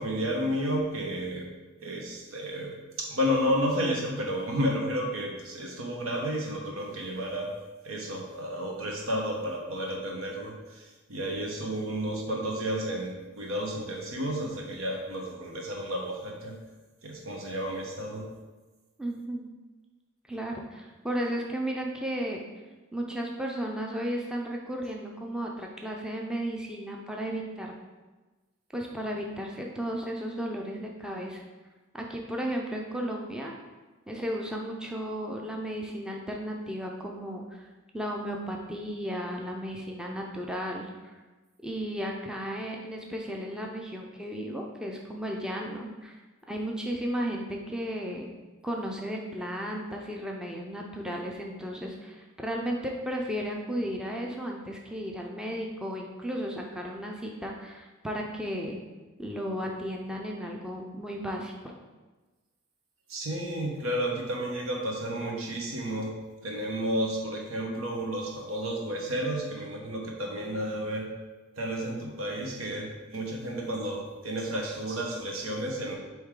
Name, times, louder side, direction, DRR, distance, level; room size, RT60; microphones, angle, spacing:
voice 1, 0.0-1.5 1.8-2.7 3.0-7.5 7.8-16.6 17.0-18.2 63.1-66.1 66.4-71.1 71.6-75.9, equal, 85° right, 0 dB, 1.2 m, -31 dB
voice 2, 19.0-19.5 20.3-22.4 22.9-27.7 28.7-31.4 31.9-33.5 34.1-37.6 37.9-41.2 41.6-46.2 46.5-48.3 48.6-58.8 59.2-61.5, equal, 5° right, 0 dB, 0.5 m, -34 dB
8.0 x 3.2 x 3.7 m, 1.2 s
head